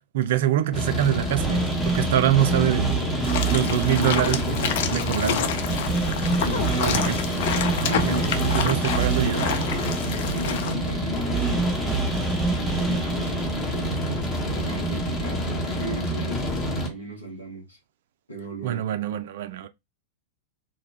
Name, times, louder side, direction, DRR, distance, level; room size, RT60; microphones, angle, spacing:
voice 1, 0.1-3.0 3.5-5.5 6.8-7.2 7.8-9.6 18.6-19.7, right 11 dB, 60° right, 0.3 m, -25 dB
sound 1, 0.7-16.9, equal, 30° left, 0.9 m, -28 dB
sound 2, 1.4-15.5, right 4 dB, 10° right, 0.7 m, -29 dB
sound 3, 3.2-10.7, left 8 dB, 55° left, 0.3 m, -29 dB
voice 2, 6.4-7.0 7.8-9.0 9.7-12.1 12.7-17.8 18.3-18.8, equal, 85° left, 1.0 m, -36 dB
2.2 x 2.1 x 3.2 m
figure-of-eight pair, 95°, 0 cm